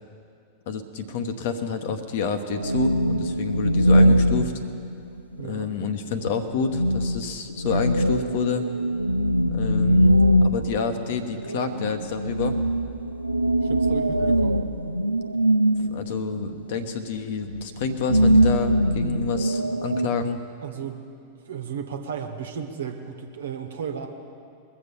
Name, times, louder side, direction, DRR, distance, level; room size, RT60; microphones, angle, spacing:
voice 1, 0.7-4.5 5.4-8.7 9.5-10.2 10.4-12.6 14.2-14.4 15.9-20.4, left 5 dB, 55° left, 8 dB, 1.1 m, -28 dB
sound 1, 2.5-5.3 6.3-6.4 6.6-16.9 17.4-20.1, equal, 85° right, 0.4 m, -22 dB
voice 2, 5.4-5.7 13.6-14.6 20.6-21.0 21.5-24.1, right 7 dB, 65° right, 5 dB, 1.3 m, -34 dB
22.0 x 7.3 x 7.0 m, 2.4 s
figure-of-eight pair, 90°, 0 cm